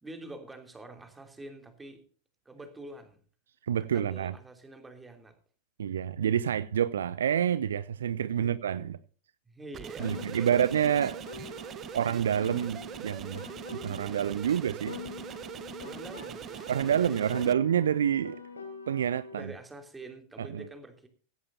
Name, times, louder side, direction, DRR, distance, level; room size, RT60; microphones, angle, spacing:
voice 1, 0.0-2.0 2.4-3.2 3.9-5.4 8.4-8.5 9.5-10.6 15.8-17.5 19.3-21.1, right 2 dB, 10° right, 3.1 m, -46 dB
voice 2, 3.7-4.3 5.8-9.0 10.0-11.5 11.9-13.4 13.7-14.9 16.7-18.4 18.9-19.5 20.4-20.6, right 9 dB, 65° right, 0.6 m, -28 dB
sound 1, 9.7-17.5, right 10 dB, 30° right, 0.8 m, -42 dB
Piano, 10.0-14.5 14.9-19.5, left 5 dB, 75° left, 2.7 m, -44 dB
16.0 x 15.5 x 2.7 m
figure-of-eight pair, 90°, 0 cm